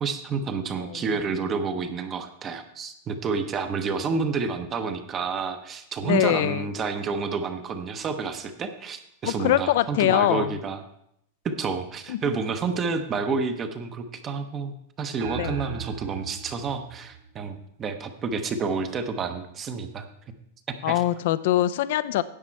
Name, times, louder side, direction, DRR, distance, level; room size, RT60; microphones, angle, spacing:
voice 1, 0.0-10.8 11.4-20.1 20.9-21.0, right 5 dB, 20° right, 8 dB, 0.7 m, -29 dB
voice 2, 6.0-6.6 9.2-10.5 12.1-12.2 15.4-15.6 20.8-22.2, left 13 dB, 60° left, 16 dB, 0.4 m, -23 dB
sound 1, 15.2-17.9, right 8 dB, 70° right, 1.6 m, -38 dB
10.0 x 7.4 x 4.5 m, 0.74 s
supercardioid pair, 160°, 0 cm